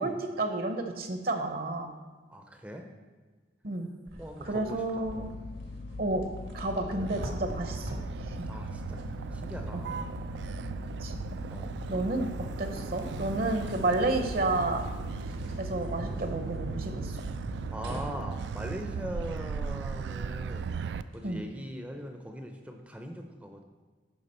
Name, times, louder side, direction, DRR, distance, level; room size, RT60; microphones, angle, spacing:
voice 1, 0.0-1.9 3.6-3.9 4.4-5.3 6.0-6.2 6.5-8.0 8.2-8.5 9.7-9.8 11.0-11.2 11.9-12.3 12.6-14.8 15.6-17.2 21.2-21.4, right 2 dB, 50° right, 5 dB, 0.7 m, -31 dB
voice 2, 2.3-2.9 4.2-5.3 8.5-9.0 9.3-10.0 11.5-11.7 17.7-20.7 21.1-23.6, equal, 5° right, 3 dB, 0.5 m, -41 dB
sound 1, 4.0-21.4, equal, 85° right, 1.4 m, -48 dB
sound 2, 5.0-17.7, left 3 dB, 70° left, 0.5 m, -41 dB
Motor vehicle (road), 7.0-21.0, right 5 dB, 70° right, 0.3 m, -37 dB
12.0 x 4.7 x 4.3 m, 1.4 s
head